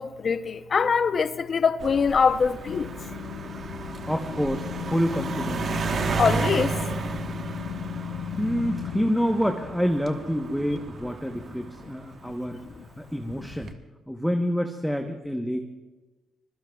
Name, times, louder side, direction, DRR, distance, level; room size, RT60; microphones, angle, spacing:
voice 1, 0.0-2.9 6.2-6.7, left 5 dB, 45° left, 0.7 m, -23 dB
sound 1, 1.8-12.5 13.3-13.7, right 4 dB, 50° right, 1.3 m, -33 dB
sound 2, 2.6-9.1, left 11 dB, 85° left, 0.4 m, -36 dB
voice 2, 4.1-5.8 8.4-12.6 13.0-13.7 14.1-15.7, equal, ahead, 1.0 m, -27 dB
26.0 x 21.0 x 2.4 m
cardioid pair, 90°, 0 cm